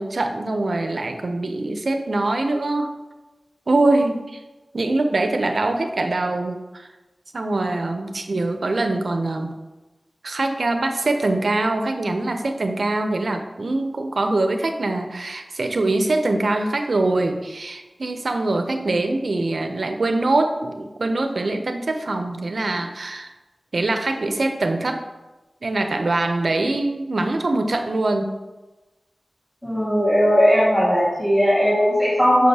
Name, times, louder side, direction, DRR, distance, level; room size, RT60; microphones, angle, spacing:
voice 1, 0.0-2.9 3.7-4.4 4.7-6.9 7.3-9.5 10.2-23.3 23.7-25.0 25.6-28.4, right 2 dB, 75° right, 6 dB, 0.6 m, -23 dB
voice 2, 29.6-32.5, equal, 5° left, -8 dB, 1.8 m, -18 dB
6.5 x 6.1 x 2.8 m, 1.1 s
wide cardioid pair, 70°, 0 cm